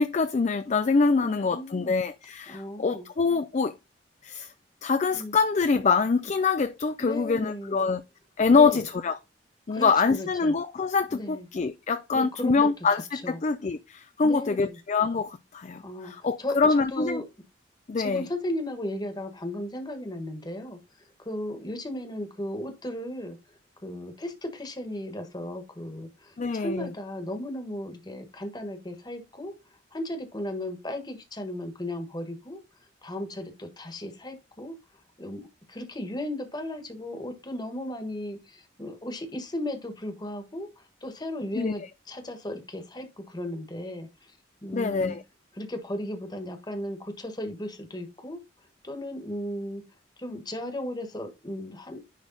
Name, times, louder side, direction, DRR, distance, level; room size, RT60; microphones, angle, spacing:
voice 1, 0.0-3.7 4.2-4.5 4.8-8.0 8.4-9.2 9.7-17.2 17.9-18.2 26.4-26.9 41.5-41.7 44.7-45.2, left 4 dB, 35° left, 0.4 m, -25 dB
voice 2, 1.2-1.9 2.5-3.0 5.1-5.4 7.0-7.9 8.5-8.8 9.7-10.5 11.1-11.4 12.1-12.7 13.1-13.4 14.2-14.8 15.8-16.6 16.9-17.2 18.0-20.8 21.2-23.4 23.8-29.5 29.9-32.6 33.0-34.7 35.2-44.3 44.6-45.2 45.5-48.4 48.8-49.8 50.2-52.1, left 1 dB, 20° left, 1.4 m, -35 dB
10.5 x 3.5 x 4.0 m
head